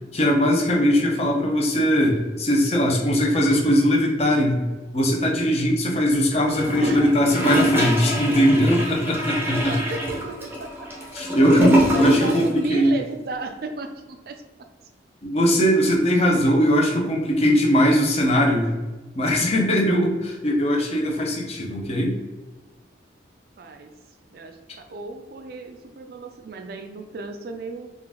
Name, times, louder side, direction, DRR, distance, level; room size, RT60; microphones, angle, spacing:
voice 1, 0.1-4.6 4.9-9.8 11.1-12.9 15.2-18.7 19.1-22.2, equal, 35° left, 0 dB, 0.6 m, -20 dB
Gurgling / Toilet flush, 6.5-12.6 12.8-12.9, equal, 10° right, 0.6 m, -24 dB
voice 2, 6.8-7.1 8.3-8.4 8.9-9.0 9.7-10.9 11.7-14.4 23.6-23.9 24.3-27.9, right 3 dB, 55° right, 6 dB, 0.4 m, -34 dB
3.7 x 2.4 x 3.6 m, 1.2 s
head